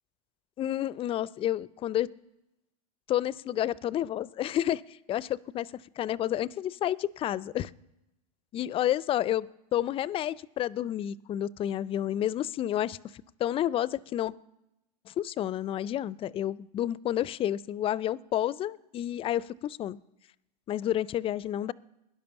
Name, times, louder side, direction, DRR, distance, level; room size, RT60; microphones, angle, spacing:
voice 1, 0.6-2.1 3.1-4.8 5.1-7.7 8.5-13.0 13.4-14.3 15.1-20.0 20.7-21.7, left 12 dB, 25° left, 22 dB, 0.4 m, -30 dB
16.5 x 10.5 x 7.0 m, 0.92 s
hypercardioid pair, 105°, 20 cm